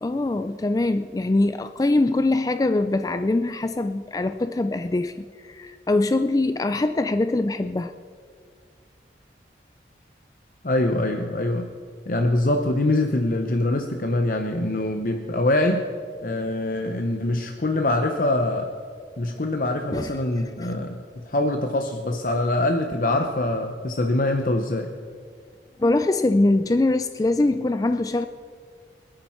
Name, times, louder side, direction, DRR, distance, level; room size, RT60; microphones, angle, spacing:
voice 1, 0.0-7.9 19.9-20.1 20.6-20.7 25.8-28.3, left 2 dB, 20° left, 9 dB, 0.3 m, -23 dB
voice 2, 10.6-11.7 12.1-15.8 16.2-18.7 19.2-24.9, left 1 dB, 50° left, 4 dB, 0.8 m, -24 dB
26.0 x 8.9 x 4.4 m, 2.1 s
head